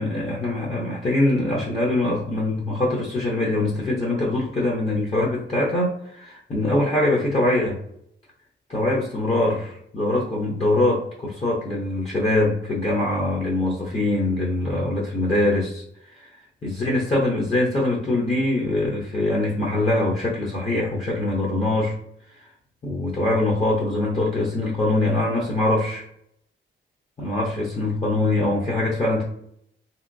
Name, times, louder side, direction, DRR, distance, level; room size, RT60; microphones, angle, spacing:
voice 1, 0.0-7.8 8.7-15.8 16.1-16.3 16.6-22.0 22.8-26.0 27.2-29.2, left 2 dB, 30° left, -3 dB, 0.8 m, -23 dB
3.0 x 2.8 x 2.6 m, 0.70 s
cardioid pair, 110°, 21 cm